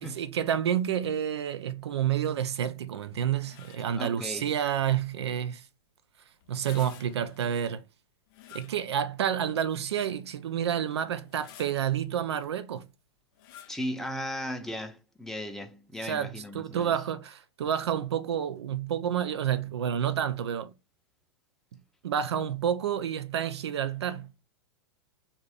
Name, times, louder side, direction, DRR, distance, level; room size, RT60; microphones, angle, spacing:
voice 1, 0.0-5.6 6.5-7.8 8.5-12.9 16.0-20.7 22.0-24.3, right 9 dB, 70° right, 0.4 m, -29 dB
sound 1, 3.3-4.0 6.4-7.5 8.3-9.2 9.8-9.9 11.1-12.0 13.3-13.9, left 10 dB, 50° left, 0.5 m, -51 dB
voice 2, 3.9-4.5 13.7-17.0, equal, 5° left, 0.6 m, -36 dB
2.7 x 2.6 x 3.3 m
figure-of-eight pair, 100°, 15 cm